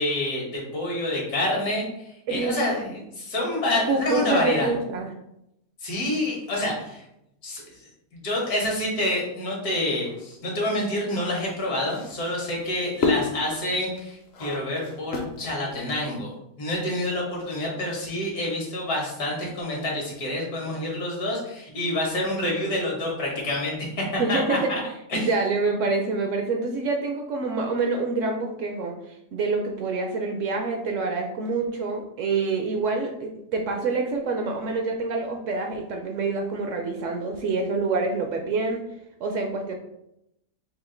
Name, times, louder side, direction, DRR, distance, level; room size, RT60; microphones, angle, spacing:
voice 1, 0.0-1.9 2.3-4.7 5.8-7.0 7.4-7.6 8.1-16.3 16.6-24.8 25.1-25.3, left 1 dB, 75° left, -2 dB, 1.8 m, -27 dB
voice 2, 2.3-2.7 3.9-5.1 24.2-24.7 25.1-38.8 39.2-39.7, right 3 dB, 65° right, 3 dB, 0.8 m, -26 dB
sound 1, 10.0-16.2, left 4 dB, 55° left, 0.8 m, -32 dB
5.0 x 2.4 x 3.7 m, 0.83 s
omnidirectional pair, 1.6 m